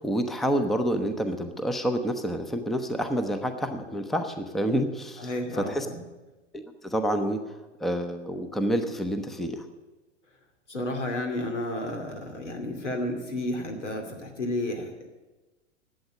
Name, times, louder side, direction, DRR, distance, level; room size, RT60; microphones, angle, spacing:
voice 1, 0.0-5.9 6.5-9.7, equal, ahead, 8 dB, 0.7 m, -28 dB
voice 2, 5.2-6.0 10.7-15.1, left 1 dB, 80° left, 3 dB, 2.5 m, -32 dB
11.5 x 8.0 x 9.3 m, 1.1 s
figure-of-eight pair, 100°, 35 cm